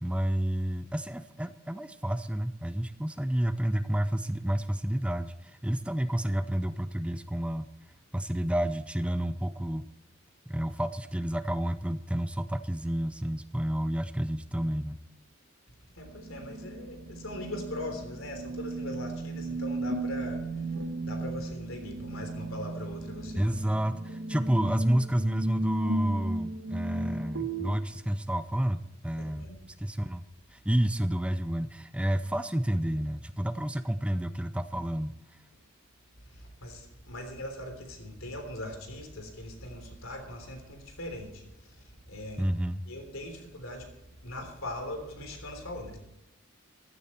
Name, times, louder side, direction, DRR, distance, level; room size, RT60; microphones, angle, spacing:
voice 1, 0.0-7.7 8.1-9.9 10.5-15.0 23.3-29.5 29.8-30.2 30.5-35.4 42.4-42.8, right 1 dB, 5° right, 12 dB, 0.4 m, -30 dB
voice 2, 15.9-23.6 24.1-24.2 29.2-29.6 36.3-42.5 42.9-43.9 44.2-46.0, left 1 dB, 90° left, 5 dB, 3.5 m, -41 dB
sound 1, 16.0-27.8, right 2 dB, 80° right, 1.3 m, -35 dB
15.5 x 13.0 x 4.4 m, 0.84 s
head